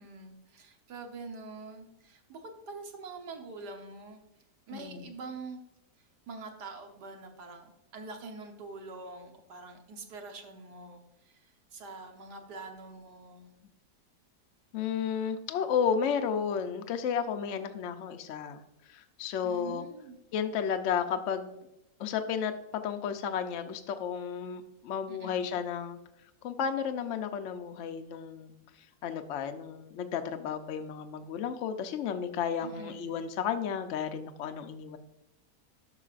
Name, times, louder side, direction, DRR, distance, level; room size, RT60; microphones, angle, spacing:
voice 1, 0.0-4.2 4.7-5.6 6.0-13.5 19.4-20.2 25.1-25.6 32.6-33.2, right 3 dB, 80° right, 4 dB, 1.7 m, -45 dB
voice 2, 4.7-5.0 14.7-18.6 18.9-19.8 20.3-21.7 22.0-26.0 26.4-28.5 29.0-35.0, left 7 dB, 60° left, 7 dB, 0.8 m, -33 dB
12.0 x 5.8 x 2.5 m, 0.89 s
omnidirectional pair, 1.8 m